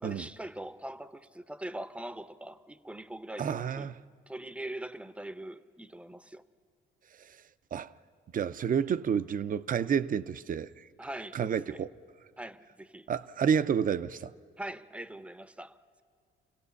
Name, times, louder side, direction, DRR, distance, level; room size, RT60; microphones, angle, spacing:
voice 1, 0.0-3.9 4.3-6.4 11.0-11.8 12.4-13.1 14.6-16.0, right 1 dB, 5° right, 0.7 m, -42 dB
voice 2, 3.4-4.0 7.3-7.4 7.7-7.9 8.3-10.8 11.3-11.9 13.1-14.3, right 7 dB, 45° right, 0.6 m, -30 dB
27.0 x 16.5 x 7.0 m
cardioid pair, 90°, 20 cm